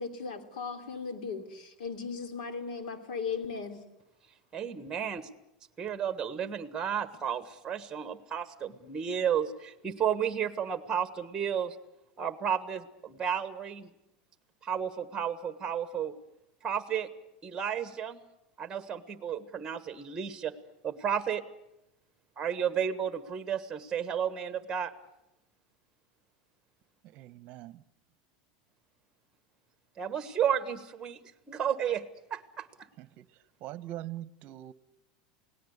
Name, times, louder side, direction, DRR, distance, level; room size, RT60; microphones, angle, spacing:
voice 1, 0.0-3.8, left 5 dB, 80° left, 3.4 m, -37 dB
voice 2, 4.5-5.3 5.8-11.7 12.2-13.9 14.6-16.1 16.6-17.1 17.4-18.2 18.6-20.5 20.8-21.4 22.4-24.9 30.0-31.2 31.5-32.0 32.3-32.9, right 8 dB, 15° right, 1.4 m, -32 dB
voice 3, 27.0-27.8 33.0-33.3 33.6-34.7, right 14 dB, 40° right, 1.0 m, -42 dB
29.0 x 18.5 x 8.1 m
supercardioid pair, 140°, 4 cm